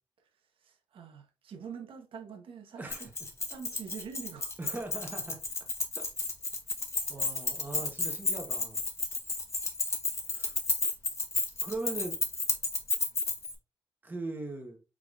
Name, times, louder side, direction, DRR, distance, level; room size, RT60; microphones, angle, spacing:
voice 1, 0.6-3.1 3.5-4.5, right 6 dB, 75° right, 0.9 m, -45 dB
voice 2, 2.8-3.1 4.6-5.4 7.1-8.8 10.3-10.5 11.6-12.1 14.0-14.8, right 2 dB, 20° right, 1.0 m, -39 dB
Keys jangling, 2.9-13.5, left 3 dB, 30° left, 0.9 m, -32 dB
4.8 x 3.8 x 2.4 m
wide cardioid pair, 145°, 9 cm